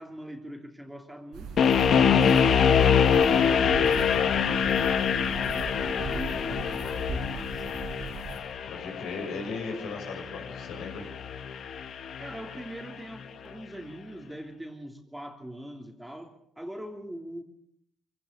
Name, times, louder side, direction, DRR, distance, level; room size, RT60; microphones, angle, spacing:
voice 1, 0.0-1.5 2.0-7.7 12.2-17.4, equal, 5° right, 4 dB, 3.1 m, -42 dB
sound 1, 1.3-8.4, right 5 dB, 90° right, 5.1 m, -40 dB
sound 2, 1.6-12.6, left 7 dB, 65° left, 1.6 m, -25 dB
voice 2, 8.7-11.1, left 4 dB, 80° left, 2 dB, 7.0 m, -37 dB
24.0 x 17.0 x 6.8 m, 0.67 s
cardioid pair, 90°, 0 cm